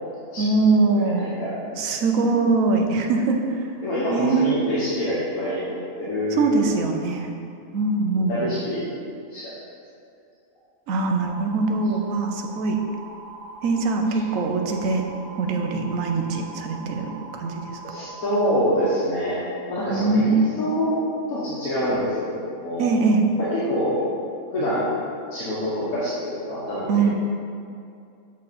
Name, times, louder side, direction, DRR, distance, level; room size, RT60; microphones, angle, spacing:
voice 1, 0.4-1.3 1.8-3.7 4.1-4.5 6.3-7.3 7.7-8.4 10.9-12.8 13.6-15.0 15.4-17.8 19.9-20.5 22.8-23.3 26.9-27.1, right 3 dB, 75° right, 3 dB, 1.1 m, -22 dB
voice 2, 1.0-1.9 3.8-6.8 8.2-8.9 9.3-9.5 14.1-14.2 17.8-22.9 23.4-24.0 24.5-24.9 25.3-26.9, equal, 85° left, -9 dB, 1.6 m, -26 dB
sound 1, 11.2-18.6, right 3 dB, 60° right, 0.4 m, -41 dB
7.6 x 4.2 x 4.1 m, 2.5 s
omnidirectional pair, 1.5 m